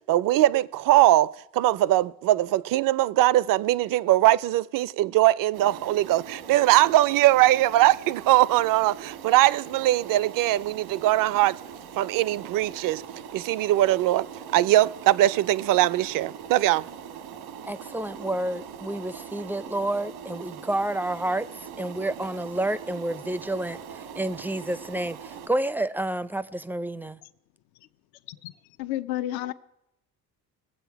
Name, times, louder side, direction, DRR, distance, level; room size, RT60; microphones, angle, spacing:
voice 1, 0.1-11.6 12.0-13.0 13.3-14.3 14.5-16.9, right 15 dB, 60° right, 0.5 m, -21 dB
sound 1, 5.5-25.5, right 7 dB, 85° right, 1.2 m, -42 dB
voice 2, 17.6-27.2, right 1 dB, 5° right, 0.4 m, -30 dB
voice 3, 28.8-29.5, left 14 dB, 75° left, 0.6 m, -31 dB
20.5 x 7.7 x 4.6 m
cardioid pair, 95°, 37 cm